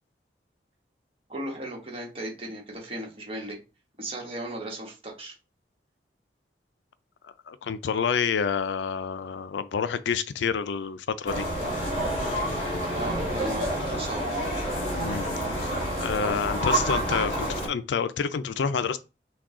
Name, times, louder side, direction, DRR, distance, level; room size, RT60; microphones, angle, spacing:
voice 1, 1.3-3.6 4.0-5.3 12.9-14.2, right 1 dB, 30° right, 1.2 m, -36 dB
voice 2, 7.2-11.5 12.7-12.9 14.9-15.3 15.6-15.7 16.0-19.0, left 6 dB, 80° left, 0.4 m, -28 dB
sound 1, 11.3-17.7, right 1 dB, 35° left, 1.8 m, -28 dB
6.0 x 2.3 x 3.6 m
head